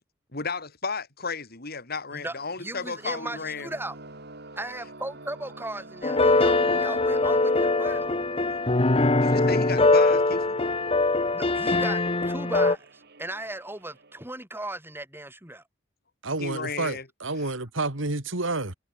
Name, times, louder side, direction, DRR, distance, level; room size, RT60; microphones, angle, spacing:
voice 1, 0.3-3.7 9.2-10.6 16.4-17.1 17.4-17.5, left 4 dB, 55° left, 4.5 m, -33 dB
voice 2, 2.1-4.0 4.6-8.1 11.3-15.6, right 1 dB, 10° right, 7.4 m, -37 dB
sound 1, 2.3-14.2, right 2 dB, 60° right, 5.9 m, -48 dB
sound 2, 6.0-12.7, left 2 dB, 30° left, 1.3 m, -22 dB
voice 3, 16.2-18.7, right 2 dB, 85° right, 3.0 m, -29 dB
head